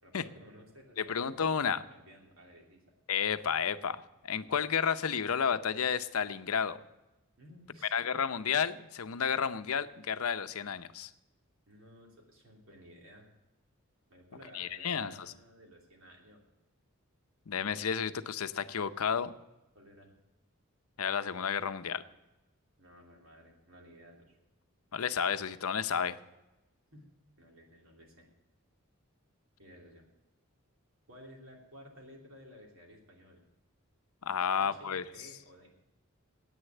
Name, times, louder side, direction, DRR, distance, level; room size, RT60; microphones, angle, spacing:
voice 1, 0.0-1.2 1.6-2.8 7.4-7.9 11.7-13.3 14.1-16.4 19.7-20.1 22.8-24.4 26.9-27.1 27.4-28.3 29.6-30.1 31.1-33.4 34.5-35.7, equal, 70° right, 0 dB, 2.9 m, -55 dB
voice 2, 1.0-1.8 3.1-6.8 7.9-11.1 14.5-15.2 17.5-19.3 21.0-22.0 24.9-26.2 34.2-35.0, left 7 dB, 85° left, 12 dB, 0.6 m, -31 dB
9.9 x 8.8 x 9.0 m, 1.0 s
head